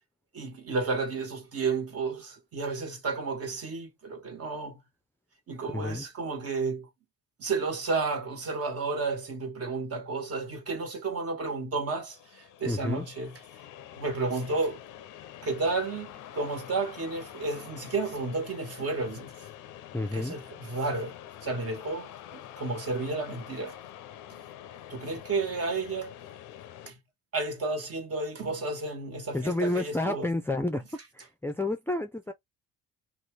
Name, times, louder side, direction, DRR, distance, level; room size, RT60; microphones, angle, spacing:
voice 1, 0.3-4.8 5.5-6.9 7.4-13.3 13.9-14.8 15.4-19.5 20.1-23.8 24.9-26.1 26.9-27.0 27.3-30.3, right 3 dB, 50° right, 1.4 m, -32 dB
voice 2, 5.7-6.1 12.6-13.1 19.9-20.4 29.3-30.8 31.1-32.3, left 2 dB, 10° left, 0.4 m, -30 dB
sound 1, 12.1-26.9, left 11 dB, 90° left, 0.5 m, -46 dB
2.6 x 2.5 x 3.2 m
cardioid pair, 90°, 30 cm